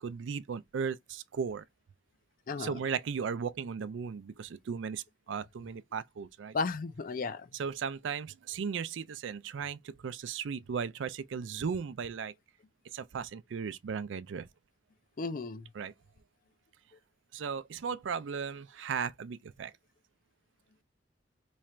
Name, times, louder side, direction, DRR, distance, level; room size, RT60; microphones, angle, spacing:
voice 1, 0.0-1.6 2.6-6.6 7.5-12.3 12.9-14.5 15.8-15.9 17.3-19.7, right 6 dB, 80° right, 0.4 m, -36 dB
voice 2, 6.5-7.5 15.2-15.7, left 4 dB, 50° left, 0.5 m, -34 dB
3.1 x 2.4 x 4.3 m
head